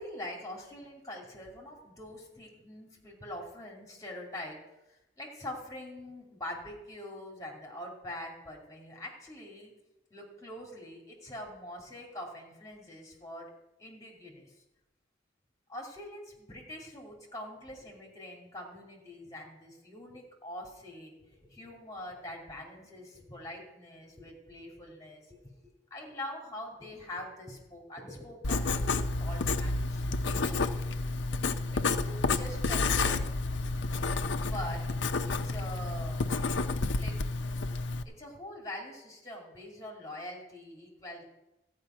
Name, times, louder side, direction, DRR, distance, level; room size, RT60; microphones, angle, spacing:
voice 1, 0.0-4.6 4.9-9.7 10.1-13.5 13.8-14.5 15.7-25.4 25.9-30.6 31.7-33.2 34.4-34.9 35.2-36.3 37.0-37.1 38.0-41.2, left 1 dB, 20° left, -1 dB, 2.5 m, -44 dB
Writing, 28.4-38.0, left 3 dB, 75° left, 0.6 m, -30 dB
13.5 x 5.3 x 9.0 m, 0.95 s
head